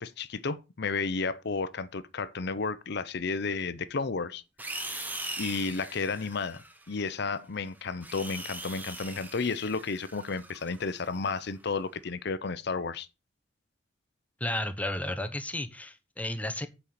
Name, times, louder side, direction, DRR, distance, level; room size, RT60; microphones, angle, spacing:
voice 1, 0.0-4.4 5.4-13.1, left 4 dB, 60° left, 0.7 m, -32 dB
sound 1, 4.6-7.1 7.8-11.5, right 1 dB, 10° right, 1.4 m, -41 dB
voice 2, 14.4-16.7, left 1 dB, 10° left, 1.0 m, -33 dB
8.4 x 5.5 x 6.5 m
head